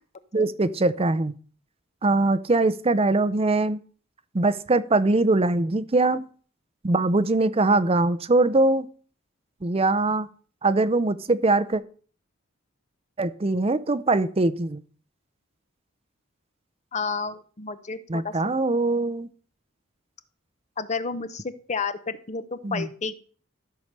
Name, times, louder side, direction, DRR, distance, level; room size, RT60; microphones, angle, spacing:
voice 1, 0.3-1.3 2.0-3.8 4.3-6.2 6.8-8.9 9.6-10.3 10.6-11.8 13.2-14.8 18.1-19.3 22.6-22.9, right 2 dB, 30° right, 14 dB, 0.6 m, -22 dB
voice 2, 16.9-18.3 20.8-23.2, left 4 dB, 35° left, 12 dB, 0.8 m, -31 dB
13.5 x 4.9 x 6.7 m, 0.43 s
head